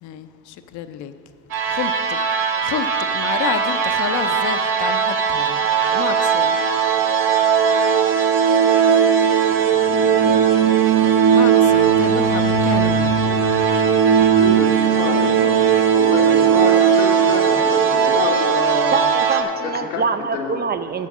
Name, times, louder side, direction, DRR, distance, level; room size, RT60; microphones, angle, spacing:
voice 1, 0.0-1.1 1.7-5.6 5.9-6.6 11.3-13.2, left 10 dB, 50° left, 11 dB, 0.5 m, -29 dB
sound 1, 1.5-19.4, right 7 dB, 60° right, 1.0 m, -17 dB
sound 2, 4.0-17.1, right 2 dB, 10° right, 0.9 m, -37 dB
voice 2, 14.3-15.7 15.9-19.0 19.6-20.6, left 5 dB, 90° left, 1 dB, 1.2 m, -28 dB
voice 3, 18.9-21.1, right 5 dB, 25° right, 10 dB, 0.3 m, -24 dB
7.4 x 5.9 x 7.4 m, 2.6 s
supercardioid pair, 75°, 39 cm